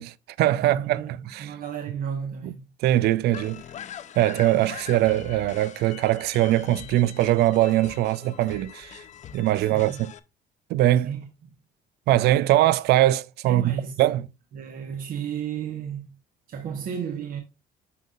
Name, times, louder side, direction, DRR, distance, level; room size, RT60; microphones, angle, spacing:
voice 1, 0.0-1.5 2.4-2.5 2.8-3.6 4.2-9.0 9.3-10.1 10.7-11.2 12.1-14.2, right 14 dB, 75° right, 0.5 m, -22 dB
voice 2, 0.5-2.6 9.7-10.0 11.0-11.3 13.4-14.0 14.5-16.1 16.5-17.4, right 7 dB, 55° right, 1.2 m, -33 dB
sound 1, 3.3-10.2, left 9 dB, 45° left, 0.6 m, -42 dB
11.0 x 3.9 x 2.4 m
cardioid pair, 110°, 17 cm